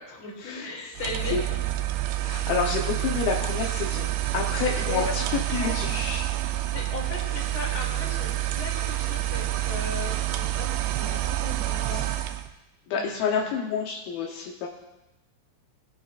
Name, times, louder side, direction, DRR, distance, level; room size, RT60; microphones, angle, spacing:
voice 1, 0.1-1.4 4.8-5.8 6.6-12.1 12.9-13.6, left 3 dB, 35° left, -3 dB, 3.2 m, -37 dB
sound 1, 1.0-12.5, right 14 dB, 90° right, 2.5 m, -28 dB
voice 2, 2.2-5.2 5.5-6.2 11.9-12.1 12.9-14.7, left 5 dB, 80° left, 0 dB, 2.7 m, -29 dB
19.0 x 9.4 x 2.4 m, 1.0 s
omnidirectional pair, 4.3 m